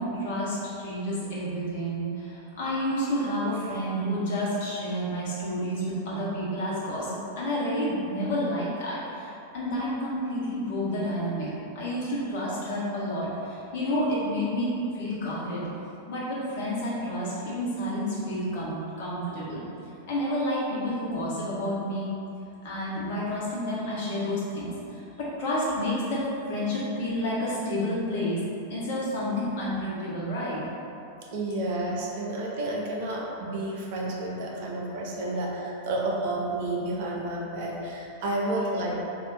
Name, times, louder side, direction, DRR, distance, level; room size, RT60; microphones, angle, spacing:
voice 1, 0.0-11.5 11.7-15.6 16.1-19.6 20.1-22.1 22.6-26.2 26.5-28.4 28.7-30.6, equal, 50° left, -7 dB, 1.2 m, -30 dB
voice 2, 31.3-39.0, right 1 dB, 50° right, -3 dB, 0.7 m, -30 dB
3.5 x 2.8 x 4.0 m, 2.8 s
figure-of-eight pair, 90°, 0 cm